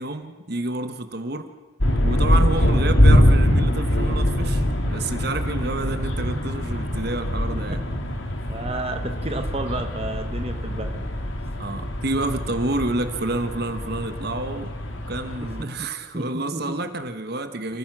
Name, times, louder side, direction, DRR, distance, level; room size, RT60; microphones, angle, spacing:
voice 1, 0.0-1.5 2.0-7.8 11.6-14.7 15.1-17.8, right 2 dB, 50° right, 9 dB, 1.2 m, -29 dB
sound 1, 1.8-15.6, equal, 70° left, 2.3 m, -23 dB
voice 2, 8.5-11.0 15.6-15.9 16.1-16.7, right 2 dB, 30° right, 6 dB, 1.1 m, -31 dB
29.5 x 15.5 x 6.0 m, 1.3 s
head